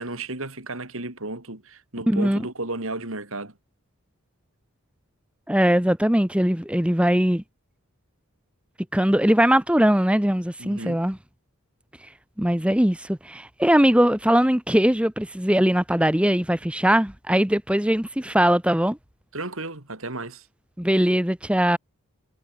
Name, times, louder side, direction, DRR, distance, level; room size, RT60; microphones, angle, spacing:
voice 1, 0.0-3.5 10.6-11.0 19.3-20.5, right 2 dB, 65° right, 3.8 m, -33 dB
voice 2, 2.1-2.4 5.5-7.4 8.9-11.2 12.0-12.1 12.4-19.0 20.8-21.8, equal, 5° right, 0.9 m, -20 dB
head